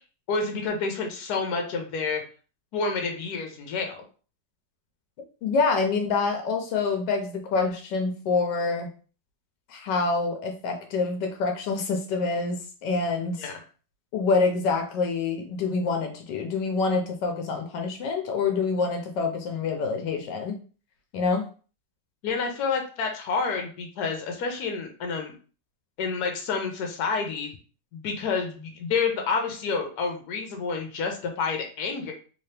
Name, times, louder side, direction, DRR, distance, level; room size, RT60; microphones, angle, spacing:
voice 1, 0.3-2.2 2.7-4.0 13.4-13.6 22.2-25.3 26.0-27.5 27.9-32.1, left 4 dB, 70° left, 3 dB, 1.3 m, -29 dB
voice 2, 5.4-8.9 9.7-13.4 14.1-20.6 21.1-21.4, left 4 dB, 90° left, 4 dB, 1.4 m, -26 dB
3.6 x 2.8 x 3.2 m, 0.38 s
omnidirectional pair, 1.8 m